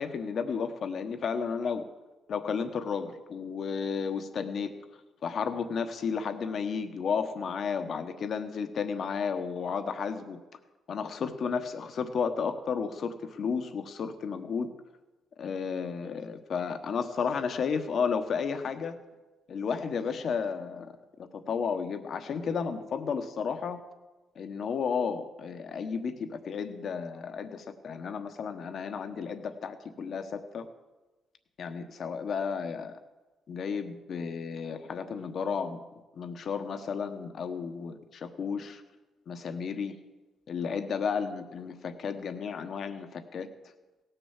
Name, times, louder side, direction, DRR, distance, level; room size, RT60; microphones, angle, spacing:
voice 1, 0.0-1.8 2.3-4.7 5.2-10.4 10.9-14.7 15.4-19.0 19.5-21.0 21.3-23.8 24.3-30.7 31.6-33.0 33.5-35.8 36.1-38.8 39.3-40.0 40.5-43.5, left 6 dB, 60° left, 8 dB, 1.2 m, -33 dB
17.0 x 6.9 x 7.3 m, 1.2 s
cardioid pair, 90°, 0 cm